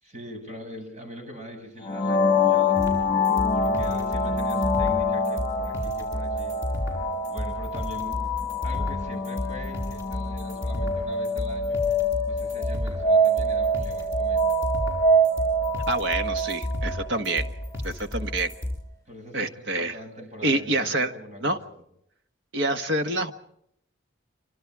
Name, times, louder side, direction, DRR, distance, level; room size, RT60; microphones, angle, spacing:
voice 1, 0.0-2.8 3.5-6.5 7.3-8.3 8.6-11.8 12.3-14.6 19.1-21.6, equal, 40° right, 3 dB, 7.8 m, -42 dB
sound 1, 1.8-17.5, left 1 dB, 20° left, 3.6 m, -25 dB
sound 2, 2.7-18.7, left 1 dB, 15° right, 6.2 m, -32 dB
voice 2, 15.9-17.5 17.8-18.5 19.3-20.0 20.4-21.1 21.4-21.6 22.5-23.3, right 2 dB, 75° right, 7 dB, 1.6 m, -27 dB
27.0 x 25.0 x 4.9 m, 0.74 s
head